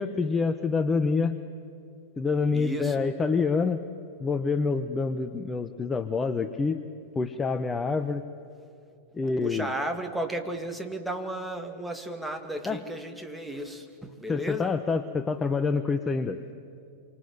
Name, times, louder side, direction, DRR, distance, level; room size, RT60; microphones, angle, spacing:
voice 1, 0.0-1.4 2.2-3.8 4.2-6.8 7.1-8.2 9.1-9.7 12.6-12.8 14.3-16.4, left 4 dB, 20° left, 10 dB, 1.1 m, -27 dB
voice 2, 2.5-3.1 9.3-14.7, right 1 dB, ahead, 4 dB, 2.6 m, -34 dB
27.0 x 26.0 x 7.9 m, 2.6 s
hypercardioid pair, 100°, 0 cm